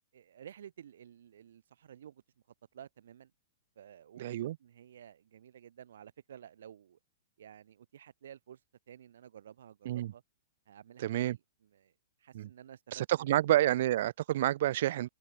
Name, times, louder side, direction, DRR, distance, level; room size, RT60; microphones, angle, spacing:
voice 1, 0.1-2.2 2.7-3.3 3.7-7.0 7.4-8.6 8.9-10.2 10.7-11.9 12.2-13.4, right 9 dB, 80° right, 3.2 m, -53 dB
voice 2, 4.2-4.6 9.9-10.1 11.0-11.4 12.3-12.5 12.9-15.1, right 13 dB, 55° right, 0.3 m, -29 dB
hypercardioid pair, 160°, 0 cm